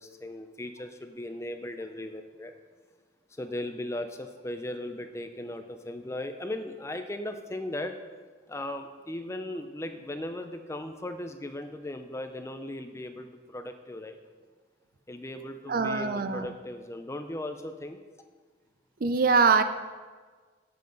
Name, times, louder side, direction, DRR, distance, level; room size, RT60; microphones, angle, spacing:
voice 1, 0.0-2.5 3.3-7.9 8.5-14.2 15.1-18.0, left 1 dB, 15° left, 7 dB, 0.4 m, -37 dB
voice 2, 15.7-16.5 19.0-19.6, right 4 dB, 45° right, 10 dB, 0.5 m, -23 dB
10.5 x 7.8 x 3.9 m, 1.5 s
head